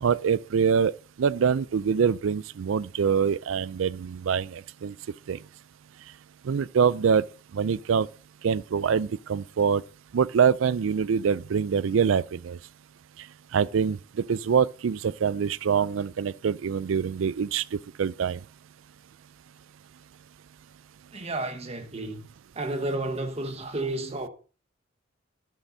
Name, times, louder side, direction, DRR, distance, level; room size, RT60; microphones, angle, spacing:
voice 1, 0.0-0.9 1.2-4.9 5.3-5.4 6.4-7.2 7.5-8.1 8.4-9.8 10.1-12.6 13.5-14.0 14.3-18.4, right 6 dB, 70° right, 0.4 m, -24 dB
voice 2, 21.1-22.3 22.5-24.3, right 2 dB, 30° right, 1.3 m, -31 dB
12.0 x 11.5 x 2.7 m
head